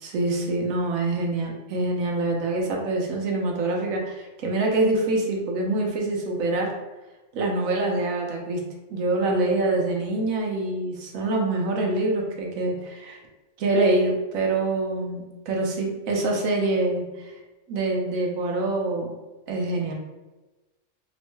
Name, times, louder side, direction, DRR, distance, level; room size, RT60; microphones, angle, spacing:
voice 1, 0.0-6.7 7.3-8.6 8.9-13.2 13.6-17.3 17.7-19.1 19.5-19.9, right 2 dB, 85° right, 0 dB, 1.1 m, -25 dB
3.0 x 2.1 x 3.1 m, 1.1 s
omnidirectional pair, 1.4 m